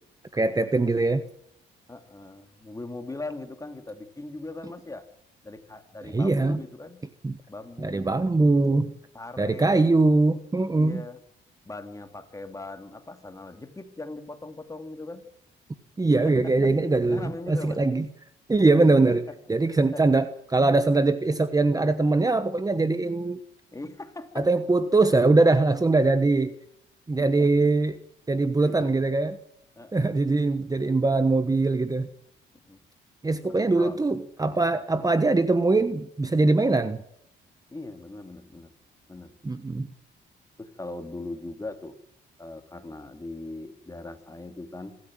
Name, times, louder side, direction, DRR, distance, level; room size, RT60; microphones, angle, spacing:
voice 1, 0.3-1.3 6.0-6.6 7.2-7.4 7.8-9.0 9.4-11.0 16.0-18.1 18.5-19.2 19.5-23.4 24.4-26.5 27.1-28.0 28.3-29.4 29.9-32.1 33.2-37.0 39.4-39.9, right 3 dB, 20° right, 11 dB, 1.1 m, -22 dB
voice 2, 1.9-5.1 5.4-7.0 7.5-8.1 9.1-9.7 10.0-10.1 10.8-11.2 11.6-15.2 16.2-16.5 17.1-17.8 19.1-19.2 19.9-20.0 23.7-24.5 27.2-27.5 28.7-29.1 29.8-30.2 32.6-32.8 33.7-34.0 37.7-38.7 39.1-39.3 40.6-42.0 42.4-45.0, left 2 dB, 15° left, 7 dB, 2.6 m, -40 dB
26.0 x 13.0 x 7.6 m, 0.72 s
cardioid pair, 90°, 20 cm